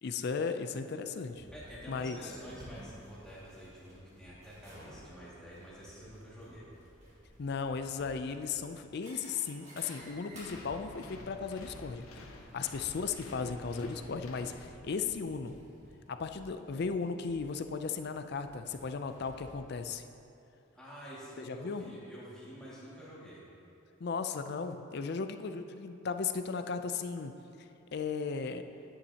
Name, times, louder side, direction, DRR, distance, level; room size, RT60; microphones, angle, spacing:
voice 1, 0.0-1.5 1.9-2.2 7.4-12.1 12.5-15.6 16.1-20.0 21.4-21.9 24.0-27.3 27.6-28.6, left 5 dB, 50° left, 8 dB, 0.4 m, -36 dB
sound 1, 1.1-19.5, equal, 35° right, 1.9 m, -55 dB
voice 2, 1.5-6.7 20.7-23.4, equal, 5° left, -9 dB, 2.1 m, -48 dB
sound 2, 10.4-15.1, left 2 dB, 90° left, 0.9 m, -50 dB
10.0 x 9.4 x 2.9 m, 2.8 s
head